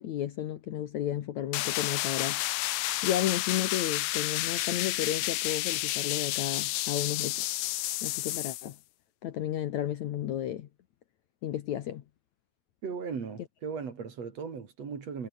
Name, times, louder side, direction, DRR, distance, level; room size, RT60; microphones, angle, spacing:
voice 1, 0.0-2.4 3.0-7.5 8.0-8.8 9.2-10.7 11.4-12.0, left 11 dB, 65° left, 2.1 m, -33 dB
Loud Noise Riser, 1.5-8.7, left 17 dB, 85° left, 2.7 m, -31 dB
voice 2, 12.8-15.3, right 6 dB, 45° right, 3.7 m, -37 dB
omnidirectional pair, 4.2 m